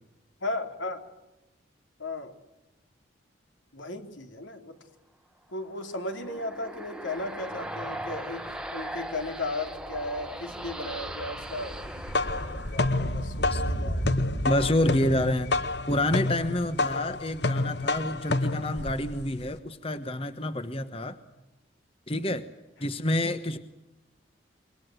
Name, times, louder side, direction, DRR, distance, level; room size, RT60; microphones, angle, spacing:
voice 1, 0.4-1.0 2.0-2.3 3.7-4.8 5.5-14.1 18.2-18.4, left 2 dB, 85° left, 5 dB, 3.7 m, -36 dB
sound 1, 5.7-13.3, right 1 dB, 5° right, 1.3 m, -39 dB
sound 2, 7.2-7.3 7.6-17.9 18.2-18.3, right 1 dB, 45° left, 2.9 m, -37 dB
sound 3, 11.8-19.6, left 2 dB, 60° left, 1.1 m, -29 dB
voice 2, 14.4-15.5 15.9-21.2 22.1-22.5 22.8-23.6, left 1 dB, 30° left, 10 dB, 1.2 m, -28 dB
26.5 x 23.5 x 7.9 m, 0.98 s
head